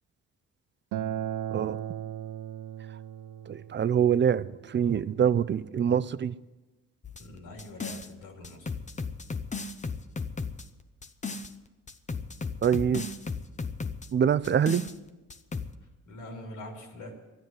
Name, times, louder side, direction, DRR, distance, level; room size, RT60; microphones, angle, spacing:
Acoustic guitar, 0.9-6.1, right 11 dB, 90° right, 0.7 m, -38 dB
voice 1, 3.5-6.4 12.6-13.1 14.1-14.9, right 8 dB, 40° right, 0.5 m, -25 dB
sound 1, 7.0-8.1 8.4-11.5 11.9-14.1 14.4-14.9 15.3-15.7, left 4 dB, 25° left, 0.9 m, -35 dB
voice 2, 7.2-8.7 16.0-17.2, left 1 dB, 85° left, 3.1 m, -43 dB
12.5 x 10.5 x 9.3 m
cardioid pair, 90°, 30 cm